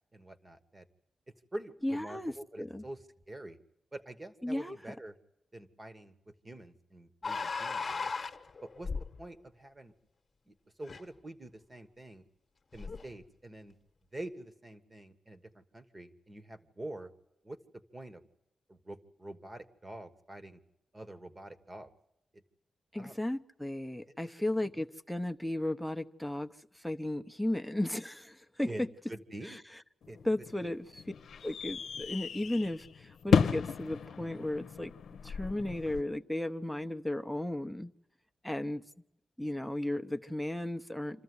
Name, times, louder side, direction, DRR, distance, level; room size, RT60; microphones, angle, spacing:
voice 1, 0.1-0.9 1.5-3.6 3.9-5.1 5.5-8.1 8.6-8.9 9.2-9.9 10.4-12.2 12.7-13.8 14.1-17.1 17.4-18.2 18.7-20.6 20.9-21.9 22.3-22.4 23.0-23.2 24.6-24.8 28.7-28.8 29.1-29.6 30.1-30.8, right 1 dB, 25° right, 10 dB, 1.4 m, -46 dB
voice 2, 1.8-2.3 2.6-2.8 4.4-4.8 22.9-26.5 26.7-28.9 30.2-31.0 31.4-34.9 35.2-37.9 38.4-38.8 39.4-41.2, left 1 dB, ahead, 7 dB, 0.8 m, -35 dB
sound 1, 7.2-9.2 10.9-11.0 12.7-13.1, left 4 dB, 40° left, 1.1 m, -36 dB
sound 2, 30.0-36.0, left 6 dB, 85° left, 0.7 m, -34 dB
26.5 x 14.0 x 9.6 m, 0.88 s
wide cardioid pair, 115°, 0 cm